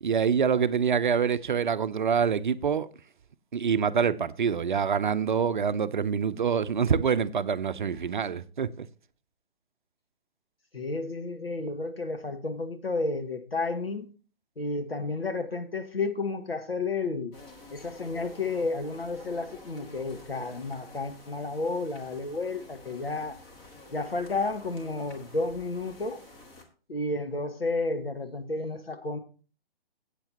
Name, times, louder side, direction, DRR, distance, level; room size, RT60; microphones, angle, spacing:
voice 1, 0.0-2.9 3.5-8.9, right 6 dB, 55° right, 0.6 m, -26 dB
voice 2, 10.7-14.1 14.6-17.3 17.7-23.4 23.9-26.2 26.9-29.2, left 3 dB, 80° left, 1.6 m, -31 dB
sound 1, 17.3-26.6, left 2 dB, 15° left, 1.3 m, -50 dB
14.5 x 8.3 x 2.8 m
figure-of-eight pair, 135°, 30 cm